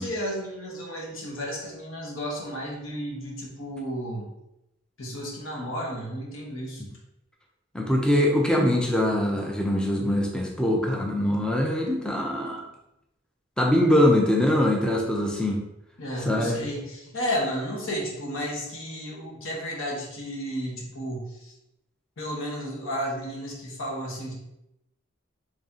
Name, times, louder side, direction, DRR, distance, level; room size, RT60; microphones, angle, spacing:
voice 1, 0.0-4.3 5.0-6.8 16.0-21.5 22.2-24.3, equal, 75° left, -2 dB, 1.0 m, -33 dB
voice 2, 7.7-12.7 13.6-15.6 16.3-16.6, left 1 dB, 5° left, 0 dB, 0.4 m, -23 dB
3.2 x 2.7 x 3.6 m, 0.86 s
head